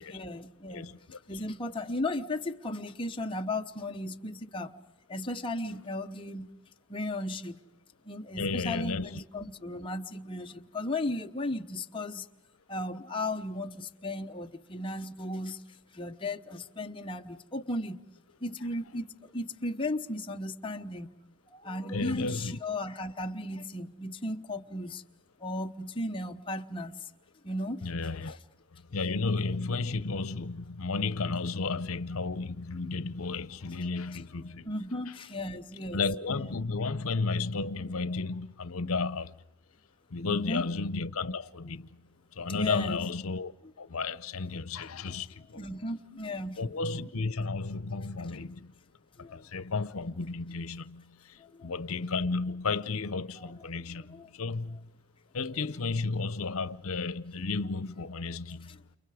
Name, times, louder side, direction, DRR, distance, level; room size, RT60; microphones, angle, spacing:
voice 1, 0.0-0.9 1.3-4.8 5.1-6.5 6.9-7.6 8.0-12.3 12.7-15.6 15.9-18.0 18.4-21.1 21.5-25.0 25.4-27.1 27.4-27.9 28.2-28.3 34.6-36.0 40.2-40.7 42.4-43.0 45.1-45.2 45.5-46.6 49.2-49.4 51.4-51.7 53.4-53.5 53.9-54.3 58.7-59.0, left 1 dB, 25° left, 0.9 m, -35 dB
voice 2, 0.7-1.5 8.3-9.2 21.9-22.6 27.8-28.4 28.9-34.7 35.1-35.2 35.9-39.3 40.1-41.9 42.4-43.5 43.8-45.6 46.6-48.7 49.3-54.8 55.3-58.8, left 4 dB, 80° left, 0.8 m, -33 dB
29.5 x 29.0 x 4.9 m
head